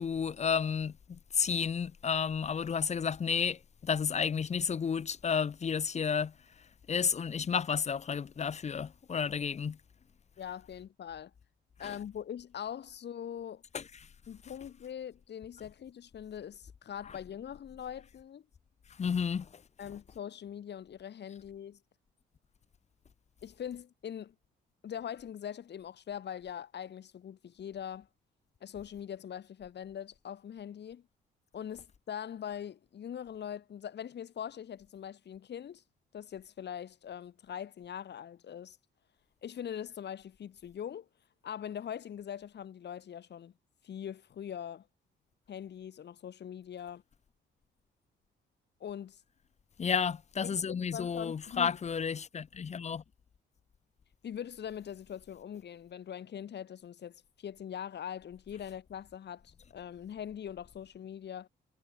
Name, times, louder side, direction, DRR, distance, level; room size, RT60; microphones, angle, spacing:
voice 1, 0.0-6.3 6.9-9.8 11.8-12.0 13.7-13.8 19.0-19.5 49.8-53.0, left 6 dB, 35° left, 0.7 m, -31 dB
voice 2, 10.4-11.3 11.8-13.6 14.3-18.4 19.8-21.8 23.4-24.3 24.8-28.1 28.6-31.1 31.5-35.8 36.1-38.8 39.4-41.1 41.4-43.5 43.8-44.9 45.5-47.0 48.8-49.2 50.4-51.8 54.2-61.5, left 9 dB, 60° left, 3.7 m, -42 dB
cardioid pair, 90°, 20 cm